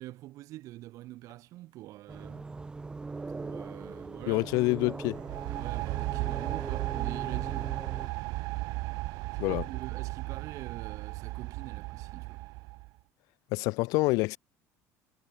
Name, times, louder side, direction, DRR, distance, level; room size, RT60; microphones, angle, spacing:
voice 1, 0.0-2.5 3.3-4.5 5.5-7.8 9.3-12.5, right 16 dB, 65° right, 7.1 m, -45 dB
sound 1, 2.1-8.1, right 3 dB, 15° right, 0.8 m, -40 dB
voice 2, 4.3-5.2 9.4-9.6 13.5-14.4, left 24 dB, 80° left, 1.2 m, -27 dB
sound 2, 5.1-12.9, right 24 dB, 80° right, 2.7 m, -35 dB
cardioid pair, 150°, 6 cm